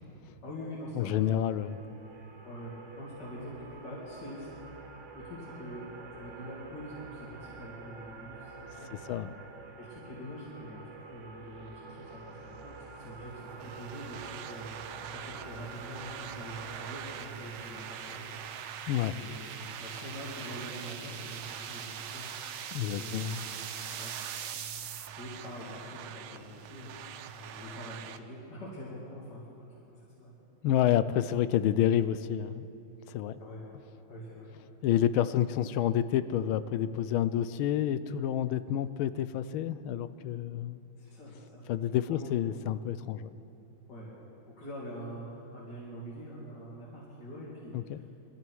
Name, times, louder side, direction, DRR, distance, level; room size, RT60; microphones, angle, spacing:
voice 1, 0.4-1.3 2.4-4.5 5.1-5.8 6.1-8.5 8.8-9.1 9.8-18.3 19.0-19.5 19.8-22.3 23.0-23.5 24.0-24.1 24.6-30.4 33.4-33.6 34.1-34.5 41.0-42.3 43.9-44.1 44.5-45.3 45.5-48.1, equal, 55° left, -6 dB, 3.3 m, -45 dB
voice 2, 0.9-1.8 8.9-9.4 18.9-19.1 22.7-23.4 30.6-32.7 33.1-33.4 34.8-40.8 41.7-43.3 47.7-48.0, left 11 dB, 80° left, 14 dB, 1.4 m, -29 dB
sound 1, 1.2-18.0, right 4 dB, 35° right, 1.2 m, -48 dB
sound 2, 11.1-25.1, right 8 dB, 65° right, 1.3 m, -44 dB
sound 3, 13.6-28.2, right 8 dB, 85° right, 1.5 m, -45 dB
22.0 x 13.0 x 4.6 m, 2.7 s
omnidirectional pair, 2.3 m